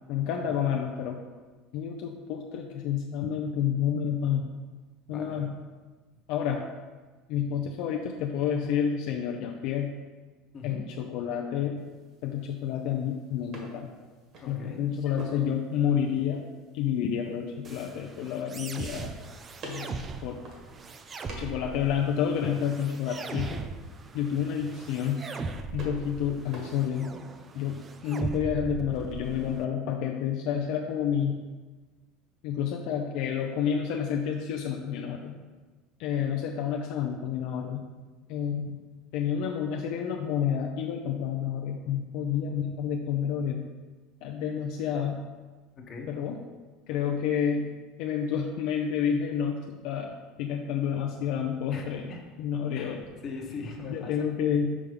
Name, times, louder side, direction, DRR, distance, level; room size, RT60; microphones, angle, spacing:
voice 1, 0.1-1.2 1.7-4.5 5.1-5.5 6.3-6.6 7.3-9.9 10.6-11.9 12.2-13.9 14.5-16.4 16.7-19.2 20.2-20.4 21.3-23.6 24.1-25.2 25.7-27.1 27.5-31.4 32.4-35.3 36.0-37.9 38.3-38.8 39.1-43.7 44.2-45.3 46.1-46.4 46.9-47.7 48.0-52.1 52.4-53.0 53.9-54.8, left 8 dB, 55° left, 1 dB, 0.6 m, -29 dB
voice 2, 5.1-5.5 10.5-10.8 14.4-15.2 19.6-19.9 28.9-29.0 45.8-46.1 51.7-52.2 52.7-54.2, left 4 dB, 30° left, 1 dB, 1.1 m, -41 dB
sound 1, 11.8-27.3, right 1 dB, 40° right, 1.6 m, -50 dB
sound 2, 17.6-29.6, right 4 dB, 20° right, 0.4 m, -40 dB
6.2 x 5.3 x 5.1 m, 1.3 s
cardioid pair, 165°, 0 cm